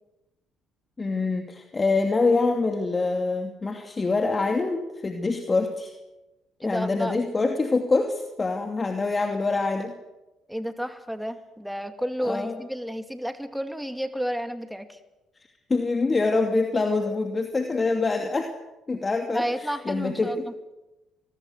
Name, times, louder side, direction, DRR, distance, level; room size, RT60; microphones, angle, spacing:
voice 1, 1.0-5.9 6.6-9.9 12.2-12.6 15.7-18.5 18.9-20.4, left 3 dB, 30° left, 5 dB, 2.6 m, -25 dB
voice 2, 6.6-7.2 10.5-15.0 19.3-20.4, equal, ahead, 8 dB, 2.4 m, -31 dB
25.5 x 20.0 x 8.0 m, 1.0 s
supercardioid pair, 60°, 0 cm